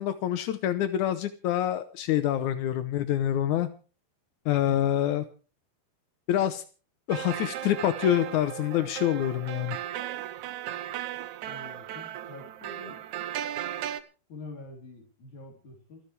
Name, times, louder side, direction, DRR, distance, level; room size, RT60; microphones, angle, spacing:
voice 1, 0.0-3.7 4.4-5.2 6.3-6.6 7.1-9.8, left 11 dB, 85° left, 11 dB, 1.7 m, -26 dB
sound 1, 7.1-14.0, right 12 dB, 80° right, 1.7 m, -36 dB
voice 2, 11.4-13.0 14.3-16.0, left 2 dB, 50° left, 0 dB, 4.9 m, -46 dB
29.0 x 10.5 x 3.3 m, 0.36 s
omnidirectional pair, 4.7 m